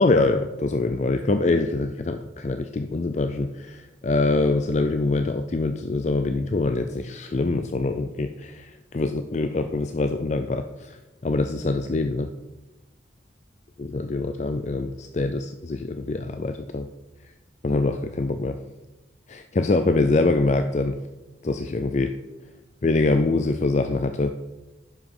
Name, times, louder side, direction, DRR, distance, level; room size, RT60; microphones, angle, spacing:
voice 1, 0.0-11.0 11.2-12.3 13.8-16.9 17.6-18.6 19.3-21.0 21.4-22.1 22.8-24.3, left 2 dB, 40° left, 7 dB, 0.4 m, -24 dB
11.0 x 5.1 x 5.4 m, 1.0 s
head